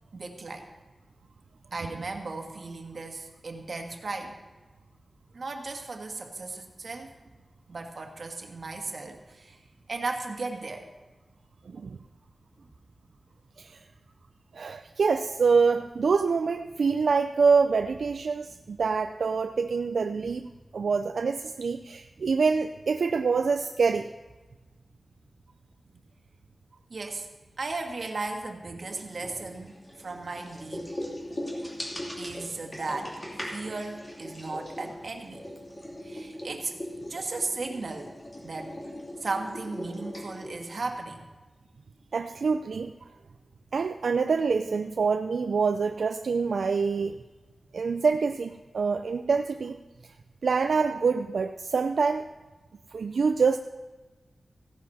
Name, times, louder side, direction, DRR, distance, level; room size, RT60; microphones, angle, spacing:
voice 1, 0.1-0.7 1.7-4.4 5.3-7.1 7.7-9.6 9.9-10.9 12.6-12.7 22.2-22.3 26.9-27.3 27.6-29.7 30.0-30.8 32.2-33.1 33.5-35.4 36.0-36.7 37.1-38.1 38.4-38.8 39.2-41.3, right 3 dB, 60° right, 3 dB, 1.6 m, -36 dB
voice 2, 1.8-2.1 11.7-12.0 13.6-13.8 14.5-24.1 42.1-42.9 43.7-47.2 47.7-49.8 50.0-50.1 50.4-52.3 52.9-53.6, right 5 dB, 85° right, 7 dB, 0.4 m, -26 dB
sound 1, 28.8-41.0, left 1 dB, 25° left, 2.5 m, -40 dB
15.5 x 11.0 x 4.2 m, 1.2 s
wide cardioid pair, 120°, 0 cm